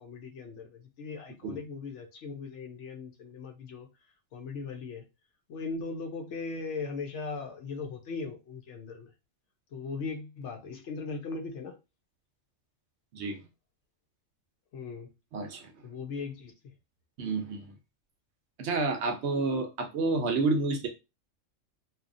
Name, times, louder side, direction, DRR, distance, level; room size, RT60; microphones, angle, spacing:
voice 1, 0.0-3.9 4.3-5.0 5.5-9.1 9.7-11.8 14.7-15.1 15.8-16.7, left 4 dB, 70° left, 0.9 m, -39 dB
voice 2, 15.3-15.7 17.2-17.7 18.6-20.9, right 3 dB, 65° right, 0.8 m, -29 dB
2.9 x 2.3 x 2.5 m
omnidirectional pair, 1.3 m